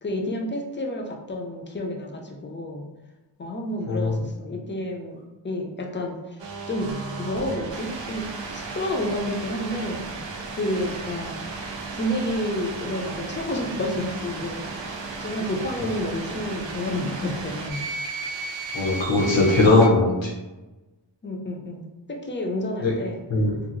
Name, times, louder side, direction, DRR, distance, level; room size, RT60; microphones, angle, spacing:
voice 1, 0.0-2.9 3.4-6.9 7.2-8.3 8.5-10.0 10.5-11.4 11.9-17.8 21.2-23.2, left 1 dB, 25° left, 1 dB, 0.5 m, -30 dB
sound 1, 6.4-19.9, right 3 dB, 80° right, 0.5 m, -34 dB
voice 2, 18.7-20.3 22.8-23.0 23.3-23.6, left 2 dB, 85° left, -3 dB, 0.8 m, -19 dB
2.8 x 2.4 x 2.6 m, 1.1 s
wide cardioid pair, 50°, 44 cm